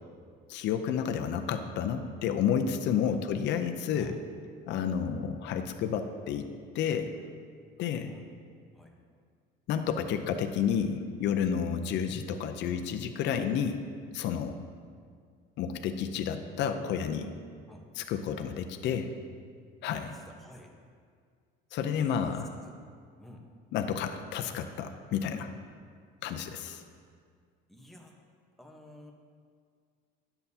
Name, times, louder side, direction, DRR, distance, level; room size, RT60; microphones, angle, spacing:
voice 1, 0.5-4.1 4.7-6.4 6.7-7.1 7.8-8.1 9.7-13.8 14.1-14.5 15.6-17.3 18.0-19.1 19.8-20.2 21.7-22.5 23.7-25.5 26.2-26.8, left 8 dB, 55° left, 6 dB, 0.5 m, -30 dB
voice 2, 19.9-20.7 21.9-22.3 22.6-22.7 23.2-23.4 27.7-28.1 28.6-29.1, left 1 dB, ahead, 0 dB, 0.9 m, -50 dB
10.0 x 6.8 x 2.8 m, 2.1 s
cardioid pair, 115°, 21 cm